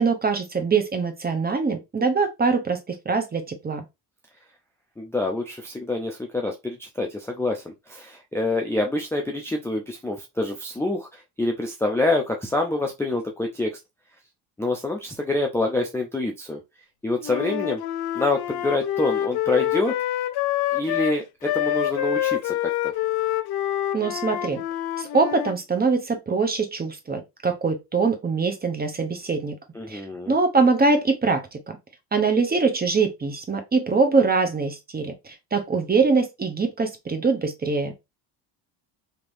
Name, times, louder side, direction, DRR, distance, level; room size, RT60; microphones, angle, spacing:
voice 1, 0.0-3.8 23.9-24.6 25.0-29.5 29.9-31.6 32.1-37.9, right 4 dB, 20° right, 0.8 m, -23 dB
voice 2, 5.0-13.7 14.6-16.6 17.0-17.8 18.2-19.9 20.7-22.6 29.7-30.3, left 2 dB, 5° left, 0.5 m, -26 dB
Wind instrument woodwind instrument, 17.2-25.6, left 13 dB, 55° left, 0.5 m, -26 dB
3.5 x 2.9 x 2.6 m
cardioid pair, 100°, 47 cm